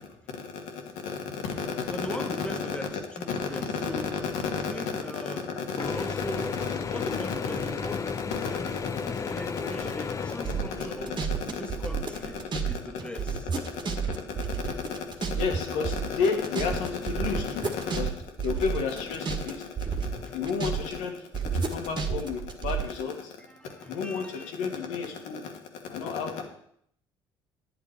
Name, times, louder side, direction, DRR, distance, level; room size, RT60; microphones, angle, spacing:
voice 1, 0.4-2.8 3.4-3.5 3.8-4.2 4.5-6.7 7.0-7.1 8.3-8.9 9.9-10.0 10.7-11.6 12.3-12.4 13.7-21.1 21.5-23.4 23.8-26.4, left 5 dB, 70° left, 2.3 m, -32 dB
voice 2, 1.8-4.2 4.5-8.8 9.1-11.2 11.6-12.4 12.7-13.5 20.2-20.3 23.4-24.6, left 1 dB, 10° left, 1.3 m, -40 dB
Mechanisms / Drill, 5.8-11.3, left 6 dB, 25° left, 0.4 m, -34 dB
sound 1, 10.4-12.7 13.0-15.6 15.8-19.5 19.8-20.9 21.3-22.8, right 6 dB, 35° right, 1.9 m, -30 dB
10.5 x 9.0 x 4.7 m
hypercardioid pair, 60°, 13 cm